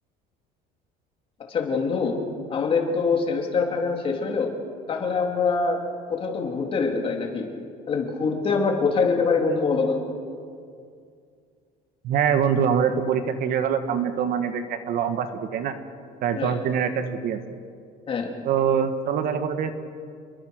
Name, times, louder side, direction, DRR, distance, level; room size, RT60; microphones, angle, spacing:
voice 1, 1.5-2.2 2.5-4.5 4.9-5.8 6.1-7.5 7.9-10.0 16.3-16.6 18.1-18.3, left 4 dB, 30° left, 1 dB, 3.4 m, -24 dB
voice 2, 12.0-15.8 16.2-17.4 18.4-19.7, right 7 dB, 55° right, 9 dB, 1.6 m, -24 dB
29.0 x 22.0 x 6.6 m, 2.3 s
cardioid pair, 165°, 18 cm